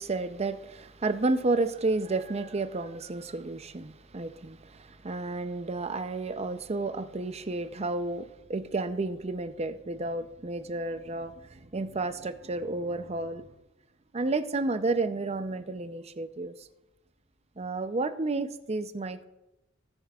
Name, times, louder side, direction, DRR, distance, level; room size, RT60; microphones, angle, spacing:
voice 1, 0.0-13.5 14.1-16.5 17.6-19.3, right 3 dB, 30° right, 0.6 m, -31 dB
20.0 x 7.4 x 2.4 m
head